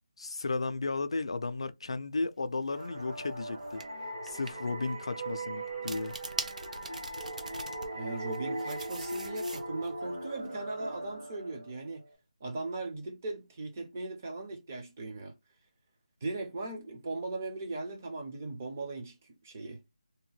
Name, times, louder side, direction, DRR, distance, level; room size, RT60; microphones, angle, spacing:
voice 1, 0.2-3.8 4.2-6.2, left 3 dB, 50° left, 0.3 m, -34 dB
sound 1, 2.7-12.1, right 1 dB, 40° right, 1.0 m, -39 dB
sound 2, 2.8-3.0 3.8-3.9 4.3-4.5 5.7-7.9 8.3-9.9, right 2 dB, 80° right, 0.7 m, -41 dB
voice 2, 7.9-12.0 12.4-15.3 16.2-19.2 19.4-19.8, right 2 dB, 20° right, 0.5 m, -38 dB
2.7 x 2.1 x 3.0 m
figure-of-eight pair, 175°, 4 cm